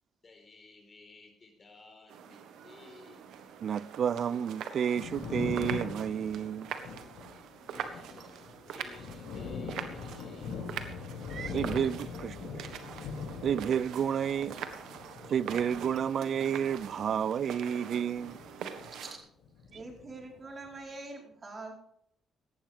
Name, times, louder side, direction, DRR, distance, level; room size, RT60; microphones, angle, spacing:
voice 1, 0.2-3.2 7.7-10.6 11.4-11.6, left 3 dB, 35° left, 4.6 m, -55 dB
sound 1, 2.1-19.2, right 8 dB, 85° right, 1.4 m, -44 dB
voice 2, 3.6-6.7 11.3-12.7 13.4-14.6 15.3-18.4 19.7-19.8, right 8 dB, 60° right, 0.4 m, -31 dB
Thunder, 4.7-19.2 19.4-20.7, left 5 dB, 85° left, 4.2 m, -42 dB
voice 3, 18.8-19.2 19.7-21.7, right 2 dB, 35° right, 4.7 m, -44 dB
18.0 x 12.0 x 3.6 m
cardioid pair, 90°, 0 cm